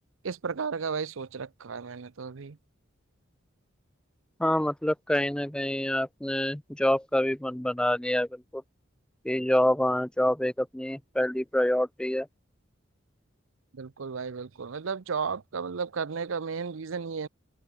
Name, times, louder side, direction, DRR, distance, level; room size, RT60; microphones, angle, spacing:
voice 1, 0.2-2.6 13.7-17.3, right 5 dB, 75° right, 0.6 m, -34 dB
voice 2, 4.4-8.3 8.5-8.6 9.2-12.3, left 1 dB, 5° left, 0.4 m, -26 dB
open air
head